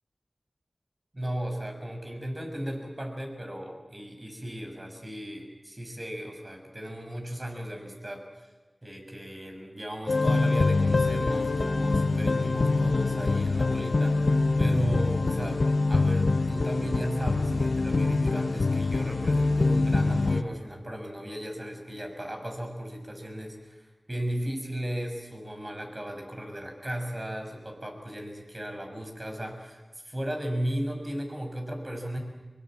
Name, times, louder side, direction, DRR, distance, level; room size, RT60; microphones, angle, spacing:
voice 1, 1.1-8.2 8.8-32.2, equal, 35° right, 4 dB, 6.2 m, -35 dB
sound 1, 10.1-20.4, left 3 dB, 80° left, 1.0 m, -24 dB
24.5 x 23.5 x 7.6 m, 1.2 s
wide cardioid pair, 55°, 0 cm